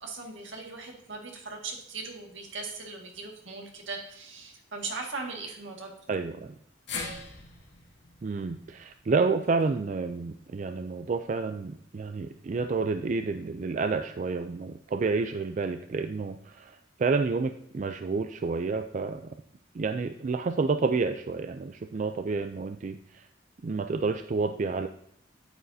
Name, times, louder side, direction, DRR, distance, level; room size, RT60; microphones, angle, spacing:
voice 1, 0.0-5.9, right 3 dB, 75° right, 1 dB, 1.9 m, -39 dB
voice 2, 6.1-6.6 8.2-19.2 19.7-23.3 23.6-24.9, right 4 dB, 40° right, 8 dB, 0.3 m, -29 dB
sound 1, 6.9-11.1 11.5-11.6 12.8-12.9, left 4 dB, 60° left, 2.4 m, -43 dB
9.0 x 8.9 x 2.7 m, 0.70 s
head